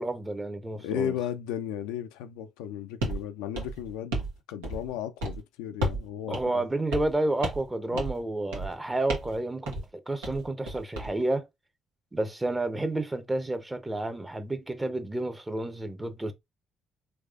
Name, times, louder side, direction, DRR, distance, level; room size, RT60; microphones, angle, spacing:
voice 1, 0.0-1.2 6.3-11.5 12.1-16.3, right 2 dB, 15° right, 0.8 m, -30 dB
voice 2, 0.8-6.6 7.9-8.0, left 10 dB, 80° left, 0.3 m, -35 dB
sound 1, 3.0-3.2 3.5-4.3 4.6-4.9 5.2-5.4 5.8-6.1 6.3-6.4 6.9-7.2 7.4-7.7 8.0-8.2 8.5-8.7 9.1-9.4 9.7-9.9 10.2-11.1, right 1 dB, 85° right, 1.0 m, -32 dB
3.4 x 3.2 x 2.5 m
hypercardioid pair, 50°, 0 cm